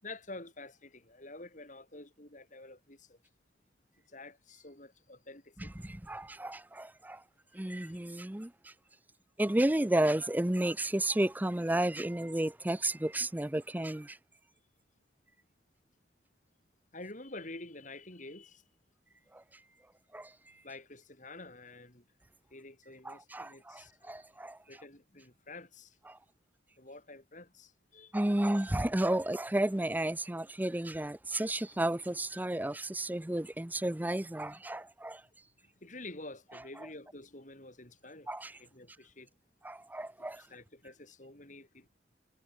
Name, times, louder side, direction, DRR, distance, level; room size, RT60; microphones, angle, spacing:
voice 1, 0.0-3.2 4.1-5.9 7.5-8.0 16.9-18.6 20.6-22.0 22.5-24.3 24.7-26.0 26.8-28.1 35.6-38.3 38.6-39.3 40.2-41.9, left 2 dB, 45° left, 6.4 m, -49 dB
voice 2, 5.8-7.2 7.5-8.7 9.4-14.2 19.3-19.4 20.1-20.3 23.0-24.6 26.1-26.2 28.1-35.2 38.3-38.6 39.6-40.4, right 1 dB, 10° right, 0.6 m, -32 dB
head